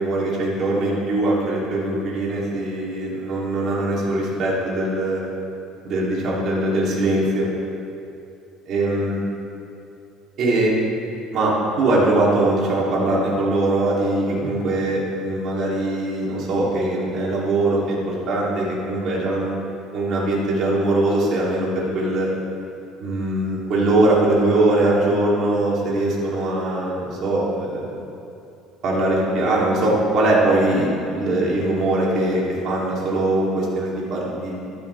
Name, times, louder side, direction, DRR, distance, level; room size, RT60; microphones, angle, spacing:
voice 1, 0.0-5.2 5.8-7.5 8.7-9.2 10.4-10.7 11.3-19.6 19.9-22.3 23.0-28.0 28.8-34.6, right 2 dB, 50° right, -5 dB, 3.2 m, -21 dB
14.0 x 11.5 x 3.5 m, 2.7 s
cardioid pair, 135°, 0 cm